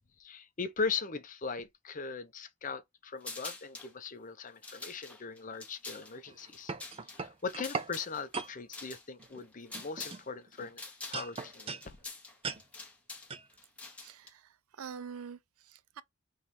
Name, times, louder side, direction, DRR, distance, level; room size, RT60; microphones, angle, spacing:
voice 1, 0.2-6.7 7.1-10.8 11.1-12.0, left 5 dB, 35° left, 0.6 m, -39 dB
sound 1, 3.2-3.9 4.5-10.3 10.5-14.3, left 3 dB, 5° left, 1.1 m, -46 dB
sound 2, 6.3-7.9 8.3-8.5 9.2-9.4 9.7-10.7 11.1-11.9 12.4-12.6 13.3-13.5, right 5 dB, 25° right, 0.4 m, -39 dB
voice 2, 14.0-16.0, right 6 dB, 80° right, 0.5 m, -46 dB
3.5 x 3.1 x 4.3 m
head